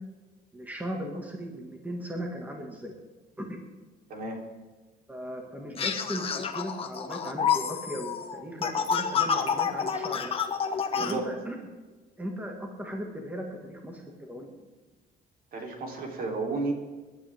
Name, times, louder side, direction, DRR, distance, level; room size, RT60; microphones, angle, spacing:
voice 1, 0.5-2.9 3.4-3.6 5.1-10.5 10.8-11.6 12.2-14.5, equal, 10° right, 1 dB, 2.0 m, -37 dB
sound 1, 5.8-11.1, left 7 dB, 30° left, 1.4 m, -29 dB
voice 2, 10.9-11.3 15.5-16.7, right 3 dB, 55° right, 1 dB, 3.7 m, -32 dB
25.5 x 12.0 x 3.7 m, 1.3 s
cardioid pair, 155°, 18 cm